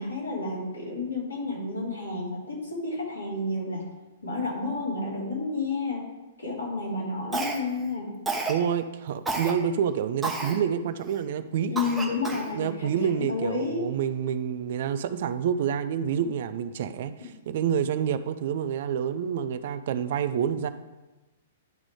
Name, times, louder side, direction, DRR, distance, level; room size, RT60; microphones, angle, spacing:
voice 1, 0.0-3.8 4.2-6.1 6.4-8.1 11.7-13.9, left 3 dB, 75° left, -5 dB, 2.9 m, -31 dB
Cough, 7.3-7.8 8.3-8.6 9.3-9.5 10.2-10.6 11.1-11.2 11.8-12.5, right 3 dB, 10° right, 1.1 m, -30 dB
voice 2, 8.5-11.7 12.5-17.1 17.5-20.7, right 8 dB, 50° right, 12 dB, 0.4 m, -28 dB
10.5 x 3.7 x 4.8 m, 1.1 s
figure-of-eight pair, 110°, 0 cm